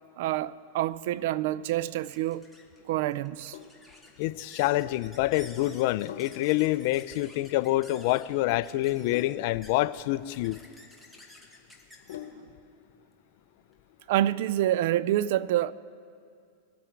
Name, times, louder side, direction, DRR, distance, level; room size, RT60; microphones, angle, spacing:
voice 1, 0.2-2.5 2.9-3.6 12.4-12.5 14.1-15.7, right 13 dB, 65° right, 0.4 m, -27 dB
sound 1, 1.2-13.8, left 2 dB, ahead, 1.5 m, -54 dB
Sink (filling or washing), 3.3-12.7, left 10 dB, 80° left, 1.1 m, -48 dB
voice 2, 4.2-10.6, left 17 dB, 60° left, 0.4 m, -27 dB
22.0 x 8.5 x 4.6 m
supercardioid pair, 130°, 0 cm